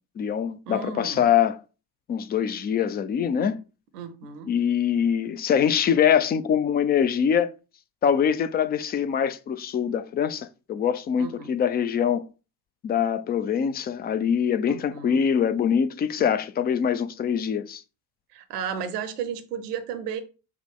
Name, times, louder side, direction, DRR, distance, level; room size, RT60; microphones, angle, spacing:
voice 1, 0.2-1.6 2.1-3.6 4.5-7.5 8.0-12.2 12.8-17.8, left 8 dB, 20° left, 0.4 m, -23 dB
voice 2, 0.7-1.3 3.9-4.5 11.2-11.5 14.7-15.2 16.2-16.3 18.3-20.2, right 7 dB, 75° right, 0.8 m, -34 dB
5.7 x 2.1 x 3.6 m
figure-of-eight pair, 55°, 48 cm